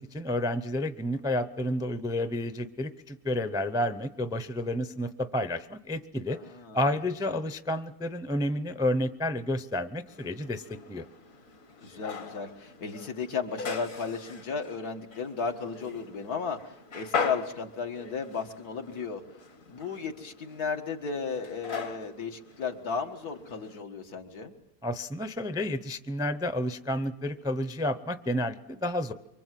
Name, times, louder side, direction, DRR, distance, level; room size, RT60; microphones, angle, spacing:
voice 1, 0.0-6.4 6.7-11.0 24.8-29.1, left 1 dB, 5° right, 11 dB, 0.5 m, -30 dB
voice 2, 6.3-6.8 7.3-7.4 11.8-19.2 19.7-24.5, left 5 dB, 80° left, 3 dB, 2.2 m, -34 dB
sound 1, 10.1-23.8, left 5 dB, 60° left, 1.9 m, -40 dB
24.5 x 24.5 x 7.6 m, 0.88 s
omnidirectional pair, 1.6 m